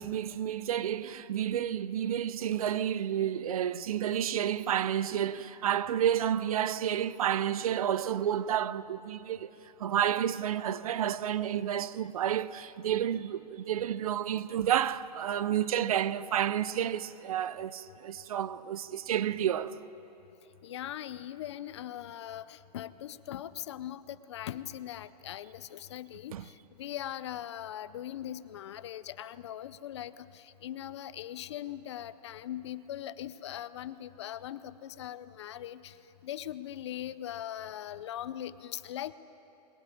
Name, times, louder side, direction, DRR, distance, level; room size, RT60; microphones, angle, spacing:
voice 1, 0.0-9.5 9.8-19.8 26.3-26.4, right 10 dB, 55° right, 0.7 m, -30 dB
voice 2, 20.6-36.0 36.2-39.1, left 11 dB, 40° left, 0.6 m, -40 dB
22.0 x 20.0 x 10.0 m
hypercardioid pair, 175°, 21 cm